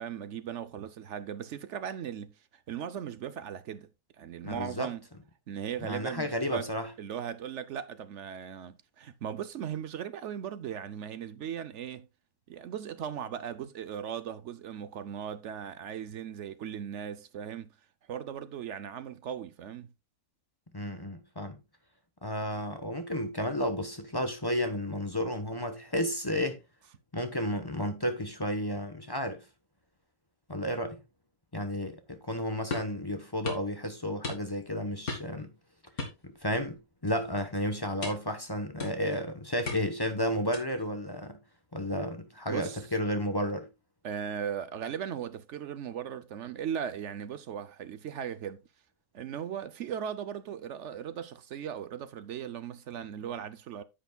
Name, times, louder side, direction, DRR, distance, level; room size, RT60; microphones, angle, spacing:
voice 1, 0.0-3.9 4.2-5.0 5.5-6.7 7.0-12.1 12.5-17.7 18.1-19.9 42.5-42.8 44.0-48.6 49.1-53.8, right 9 dB, 65° right, 0.8 m, -38 dB
voice 2, 4.4-4.9 5.8-6.9 20.7-21.6 22.2-26.6 27.1-29.4 30.5-31.0 31.5-35.5 36.2-41.4 41.7-43.7, equal, 20° left, 0.8 m, -32 dB
sound 1, 32.7-33.0 33.5-33.7 34.2-34.7 35.1-35.4 36.0-36.7 37.1-37.3 38.0-38.3 38.8-39.2 39.7-40.0 40.5-40.8, left 3 dB, 80° left, 2.6 m, -38 dB
10.0 x 8.2 x 2.3 m
omnidirectional pair, 1.5 m